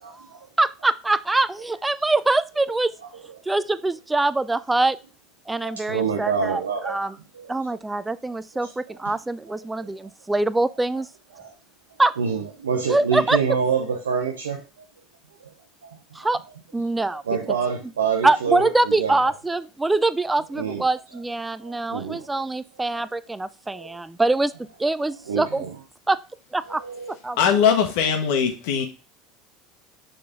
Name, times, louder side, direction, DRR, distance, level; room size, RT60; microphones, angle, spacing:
voice 1, 0.6-2.9 3.5-5.0 5.5-7.2 7.5-11.1 12.0-12.1 12.9-13.4 16.1-16.4 16.7-17.2 18.2-25.6 26.1-26.2 26.5-26.8 27.1-27.6, right 2 dB, 10° right, 0.4 m, -24 dB
voice 2, 5.6-7.5 8.6-8.7 9.0-9.2 9.8-9.9 11.3-11.5 12.2-14.8 15.4-15.5 15.8-16.3 17.3-19.1 20.6-20.9 21.6-22.5 22.9-23.0 23.7-23.9 25.3-25.8 26.7-27.1, right 6 dB, 85° right, 0.7 m, -27 dB
voice 3, 27.4-28.8, left 7 dB, 70° left, 1.5 m, -20 dB
6.5 x 4.1 x 3.6 m
hypercardioid pair, 75°, 0 cm